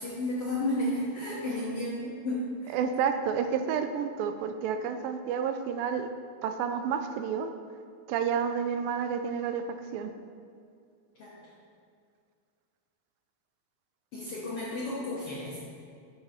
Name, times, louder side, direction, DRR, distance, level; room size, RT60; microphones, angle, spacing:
voice 1, 0.0-2.8 11.1-11.5 14.1-15.6, left 1 dB, 65° left, -6 dB, 1.5 m, -33 dB
voice 2, 2.7-6.1 6.4-7.5 8.1-10.1, right 7 dB, 80° right, 8 dB, 2.2 m, -30 dB
9.6 x 7.0 x 4.2 m, 2.3 s
omnidirectional pair, 4.1 m